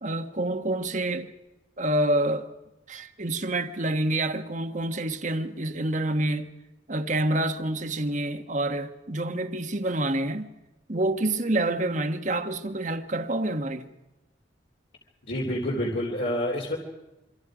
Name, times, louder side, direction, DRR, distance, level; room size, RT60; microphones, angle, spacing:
voice 1, 0.0-1.3 1.8-2.5 2.9-6.5 6.9-10.5 10.9-13.9, right 1 dB, 40° right, 1.4 m, -27 dB
voice 2, 15.3-16.8, left 1 dB, 65° left, 3.7 m, -28 dB
26.5 x 24.5 x 5.0 m
head